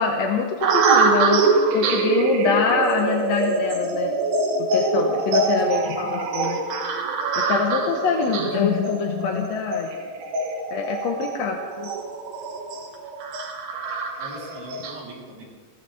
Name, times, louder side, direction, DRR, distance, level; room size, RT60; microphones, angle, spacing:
voice 1, 0.0-1.5 1.7-4.1 4.7-6.6 7.5-9.9 10.7-11.9, left 6 dB, 65° left, 2 dB, 1.8 m, -24 dB
sound 1, 0.6-15.0, right 4 dB, 80° right, 3.4 m, -24 dB
voice 2, 14.2-15.5, right 1 dB, 55° right, -4 dB, 4.8 m, -41 dB
22.0 x 16.0 x 3.4 m, 1.5 s
omnidirectional pair, 4.0 m